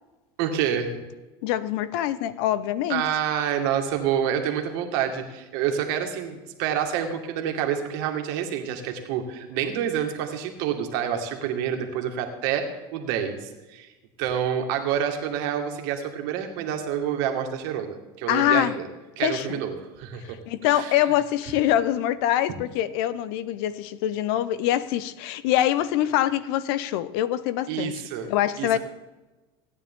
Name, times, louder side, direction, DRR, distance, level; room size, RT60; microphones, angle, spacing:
voice 1, 0.4-0.9 2.9-13.9 14.2-18.9 19.2-21.0 27.7-28.3 28.6-28.8, right 9 dB, 75° right, 2.0 m, -28 dB
voice 2, 1.4-3.0 18.3-18.7 19.2-19.6 20.5-28.8, left 12 dB, 75° left, 0.8 m, -24 dB
17.0 x 9.7 x 3.7 m
supercardioid pair, 115°, 13 cm